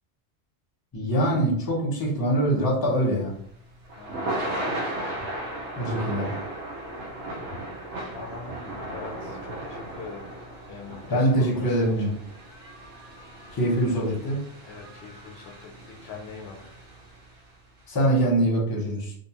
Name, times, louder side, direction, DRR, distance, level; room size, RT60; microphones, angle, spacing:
voice 1, 0.9-3.3 5.8-6.3 11.1-12.1 13.5-14.4 17.9-19.1, right 1 dB, 25° left, -3 dB, 0.7 m, -23 dB
Thunder / Rain, 3.1-17.4, right 1 dB, 85° right, 1.0 m, -36 dB
voice 2, 4.0-4.3 8.1-10.3 10.7-12.1 14.6-16.7, left 4 dB, 70° left, 0 dB, 0.8 m, -42 dB
2.5 x 2.3 x 2.8 m, 0.65 s
omnidirectional pair, 1.2 m